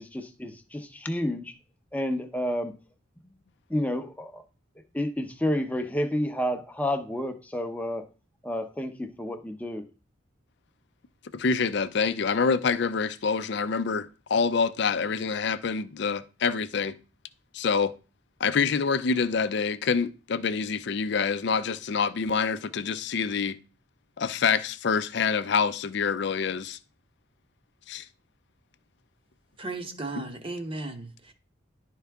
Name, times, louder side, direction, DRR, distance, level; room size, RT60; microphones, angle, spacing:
voice 1, 0.0-1.5 1.9-2.7 3.2-3.3 3.7-4.4 4.9-8.0 8.4-9.9, left 1 dB, 10° left, 0.7 m, -30 dB
voice 2, 11.3-16.9 17.5-17.9 18.4-23.6 24.2-26.8 27.9-28.0 30.2-30.3, left 5 dB, 60° left, 0.5 m, -26 dB
voice 3, 29.6-31.3, right 2 dB, 30° right, 0.9 m, -35 dB
11.0 x 4.6 x 3.5 m
head